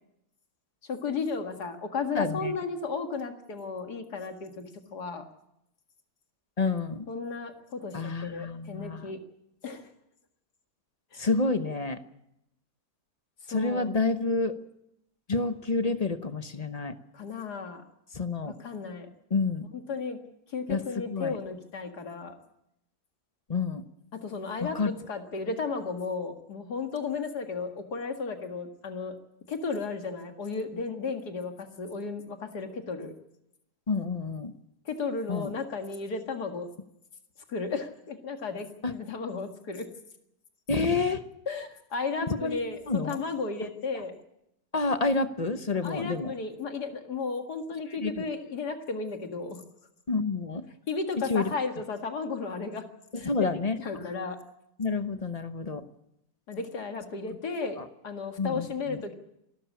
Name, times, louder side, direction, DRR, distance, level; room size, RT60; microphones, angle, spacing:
voice 1, 0.9-4.6 4.9-5.2 7.1-9.2 9.6-9.9 11.1-11.3 13.5-13.9 17.1-17.8 18.5-19.1 19.9-20.2 20.5-22.3 24.1-29.2 29.5-33.1 34.9-36.7 37.5-39.9 41.5-44.2 45.8-49.6 50.9-52.8 53.2-53.3 53.8-54.4 56.5-57.8 58.0-59.2, left 4 dB, 85° left, 5 dB, 2.5 m, -34 dB
voice 2, 2.1-2.5 6.6-7.1 7.9-9.1 11.2-12.0 13.5-14.6 15.3-17.0 18.1-18.5 19.3-19.6 20.7-20.8 21.1-21.4 23.5-23.8 24.6-24.9 33.9-34.5 35.3-35.5 38.8-38.9 40.7-41.2 42.3-42.6 42.9-43.2 44.7-46.3 48.0-48.2 50.1-50.7 51.3-51.5 53.1-54.1 54.8-55.8 57.8-57.9 58.4-59.0, left 3 dB, 30° left, 10 dB, 0.9 m, -29 dB
26.5 x 13.0 x 8.6 m, 0.83 s
omnidirectional pair, 1.7 m